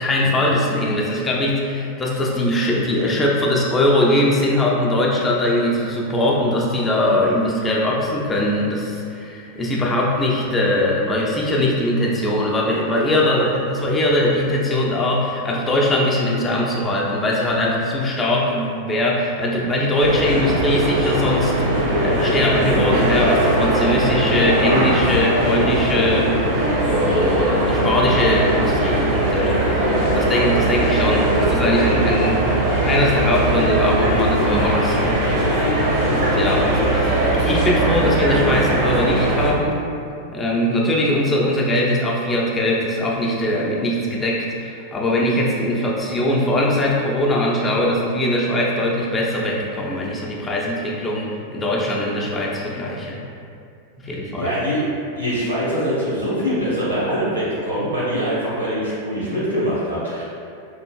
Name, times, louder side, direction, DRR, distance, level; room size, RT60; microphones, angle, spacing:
voice 1, 0.0-35.4 36.0-37.2 37.4-39.8 40.3-53.2 54.0-54.5, left 1 dB, 20° left, -3 dB, 0.4 m, -21 dB
sound 1, 20.0-39.5, right 1 dB, 50° right, 0.6 m, -19 dB
voice 2, 54.2-54.8 55.1-60.2, equal, 85° right, -10 dB, 1.1 m, -23 dB
3.1 x 2.4 x 2.2 m, 2.4 s
figure-of-eight pair, 90°, 0 cm